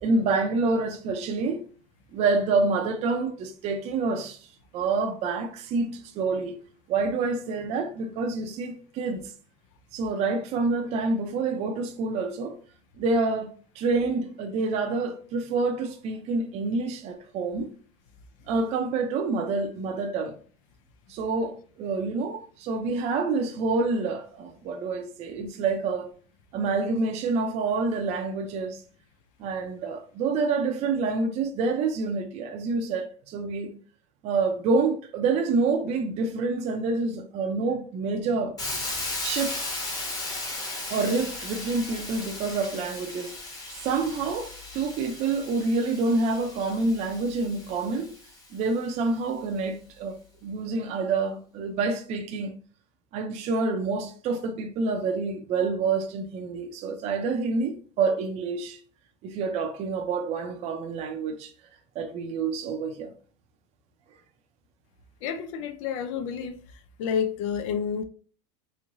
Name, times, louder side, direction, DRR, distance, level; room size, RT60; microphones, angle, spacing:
voice 1, 0.0-1.6 2.1-4.4 4.7-6.6 6.9-9.2 9.9-12.6 13.0-13.5 13.8-17.7 18.5-20.3 21.1-26.1 26.5-28.8 29.4-33.7 34.2-38.5 39.2-39.6 40.9-43.3 43.8-48.1 48.5-52.5 53.1-58.8 59.2-61.5 61.9-63.1, right 3 dB, 40° right, 0.5 m, -27 dB
Hiss, 38.6-48.5, left 2 dB, 20° left, 1.0 m, -36 dB
voice 2, 65.2-66.6 67.0-68.0, left 7 dB, 75° left, 0.5 m, -29 dB
3.5 x 3.1 x 2.6 m
supercardioid pair, 145°, 17 cm